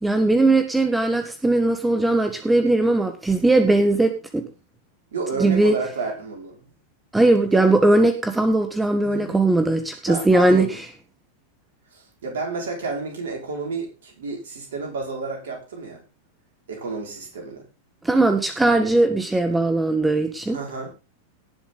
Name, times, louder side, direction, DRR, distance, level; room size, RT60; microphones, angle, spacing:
voice 1, 0.0-4.5 5.4-5.7 7.1-10.7 18.0-20.6, right 2 dB, 5° right, 8 dB, 1.4 m, -19 dB
voice 2, 5.1-6.7 7.5-7.7 9.0-9.6 10.1-10.8 11.9-16.0 16.7-17.7 20.5-21.0, right 4 dB, 60° right, 0 dB, 5.5 m, -31 dB
18.5 x 7.1 x 4.0 m, 0.31 s
figure-of-eight pair, 90°, 0 cm